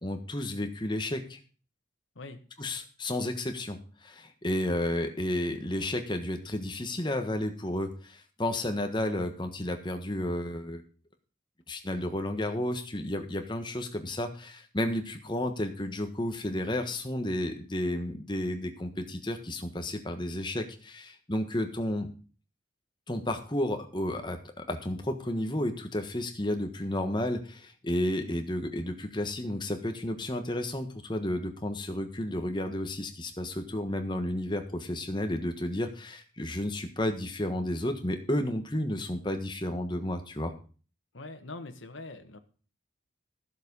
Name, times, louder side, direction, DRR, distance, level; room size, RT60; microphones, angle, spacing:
voice 1, 0.0-1.4 2.6-10.8 11.7-22.1 23.1-40.5, left 1 dB, 25° left, 6 dB, 1.4 m, -32 dB
voice 2, 41.1-42.4, left 2 dB, 75° left, 6 dB, 1.4 m, -43 dB
13.5 x 7.5 x 5.4 m, 0.38 s
head